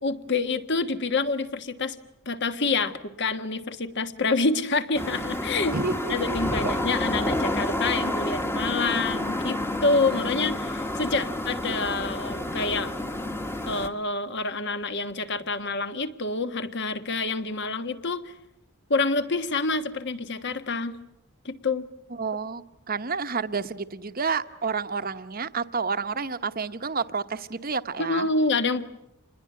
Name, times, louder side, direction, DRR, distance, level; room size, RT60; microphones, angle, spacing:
voice 1, 0.0-2.0 2.2-5.7 6.1-12.9 13.7-18.3 18.9-21.0 21.4-21.9 28.0-28.8, left 3 dB, 55° left, 10 dB, 1.5 m, -27 dB
sound 1, 4.9-13.9, left 1 dB, 10° left, 1.3 m, -29 dB
voice 2, 5.7-6.4 6.6-6.7 22.2-28.3, right 5 dB, 40° right, 11 dB, 1.0 m, -30 dB
28.0 x 20.5 x 9.5 m, 0.86 s
head